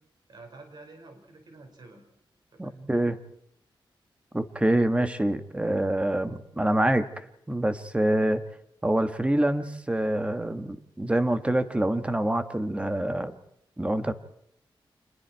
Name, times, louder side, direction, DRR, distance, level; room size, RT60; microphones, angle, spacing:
voice 1, 0.3-2.0 2.5-2.9, right 2 dB, 55° right, 4 dB, 5.3 m, -48 dB
voice 2, 2.6-3.2 4.3-7.1 7.5-8.4 8.8-13.3 13.8-14.1, right 1 dB, 15° right, 10 dB, 1.4 m, -26 dB
27.5 x 21.0 x 4.6 m, 0.74 s
wide cardioid pair, 110°, 9 cm